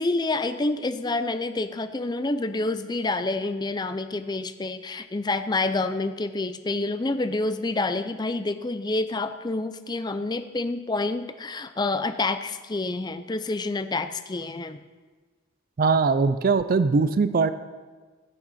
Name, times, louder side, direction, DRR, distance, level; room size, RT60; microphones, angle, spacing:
voice 1, 0.0-14.8, left 2 dB, 20° left, 11 dB, 0.5 m, -28 dB
voice 2, 15.8-17.5, right 4 dB, 45° right, 13 dB, 0.4 m, -21 dB
15.0 x 8.9 x 4.2 m, 1.4 s
head